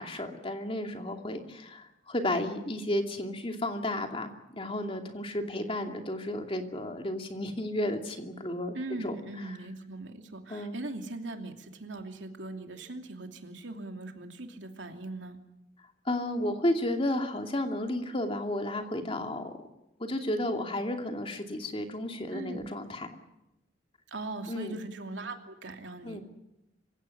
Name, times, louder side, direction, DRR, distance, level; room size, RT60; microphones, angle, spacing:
voice 1, 0.0-8.7 9.0-9.1 10.5-10.8 16.1-19.6 20.0-23.1 24.5-24.8 26.0-26.2, left 1 dB, 30° left, 4 dB, 2.7 m, -32 dB
voice 2, 8.7-15.4 22.3-22.7 24.1-26.2, right 2 dB, 85° right, 4 dB, 2.9 m, -40 dB
25.5 x 17.0 x 9.8 m, 0.92 s
head